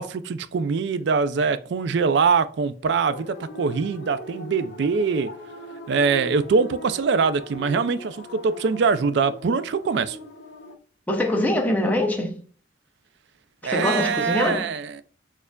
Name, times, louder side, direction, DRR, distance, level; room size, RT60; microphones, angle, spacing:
voice 1, 0.0-5.3 5.9-10.2 13.6-15.0, right 5 dB, 60° right, 0.3 m, -23 dB
sound 1, 3.0-10.7, left 1 dB, 60° left, 0.7 m, -40 dB
voice 2, 11.1-12.4 13.6-14.7, left 1 dB, 10° left, 0.5 m, -23 dB
6.4 x 2.4 x 2.2 m
head